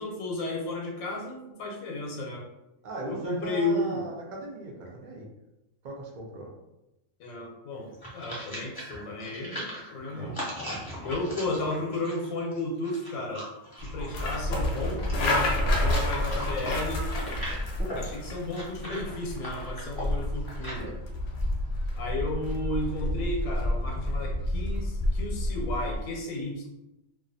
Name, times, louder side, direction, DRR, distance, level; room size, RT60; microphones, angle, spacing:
voice 1, 0.0-2.4 3.1-4.0 7.2-9.6 9.9-10.4 11.0-13.4 13.8-17.1 17.9-20.9 22.0-26.7, left 2 dB, 85° left, 0 dB, 1.0 m, -33 dB
voice 2, 2.8-5.3 5.8-6.5 10.1-10.4, right 2 dB, 65° right, -1 dB, 0.5 m, -38 dB
sound 1, 7.7-20.9, equal, 25° left, 0.5 m, -39 dB
sound 2, 13.8-26.1, left 1 dB, 65° left, 0.7 m, -30 dB
2.3 x 2.3 x 2.5 m, 0.94 s
omnidirectional pair, 1.4 m